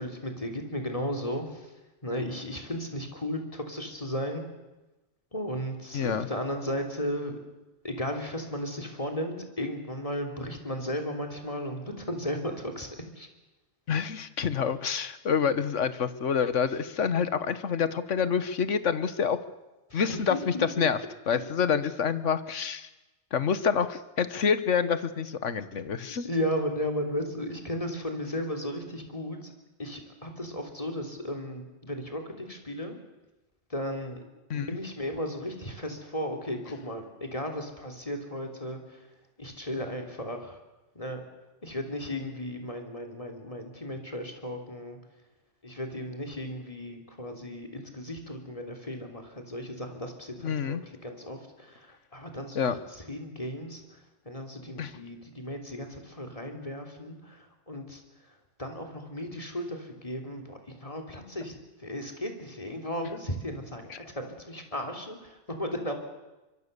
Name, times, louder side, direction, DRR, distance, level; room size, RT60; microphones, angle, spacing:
voice 1, 0.0-1.7 2.0-4.4 5.3-7.4 7.8-13.3 20.1-20.7 26.1-29.5 29.8-33.0 33.7-34.2 34.5-39.1 39.4-40.6 40.9-41.2 41.6-45.0 45.6-65.9, equal, 30° left, 3 dB, 3.4 m, -35 dB
voice 2, 5.9-6.3 13.9-19.4 19.9-21.0 21.3-22.9 23.3-26.3 34.5-34.8 50.4-50.8 52.5-52.7 54.8-54.9, left 6 dB, 80° left, 13 dB, 1.5 m, -27 dB
25.0 x 22.5 x 6.8 m, 1.1 s
omnidirectional pair, 1.2 m